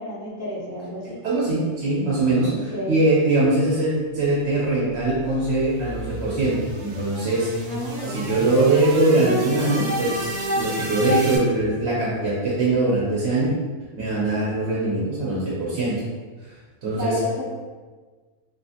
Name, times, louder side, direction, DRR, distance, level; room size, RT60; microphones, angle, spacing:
voice 1, 0.0-1.2 2.5-3.0 7.7-8.5 16.9-17.5, left 1 dB, 25° left, -9 dB, 0.3 m, -31 dB
voice 2, 1.2-7.6 8.1-13.5 14.0-16.0 16.8-17.2, right 2 dB, 60° right, -6 dB, 0.9 m, -22 dB
sound 1, 5.0-11.4, equal, 80° right, 0.4 m, -30 dB
3.0 x 2.7 x 2.4 m, 1.4 s
omnidirectional pair, 1.5 m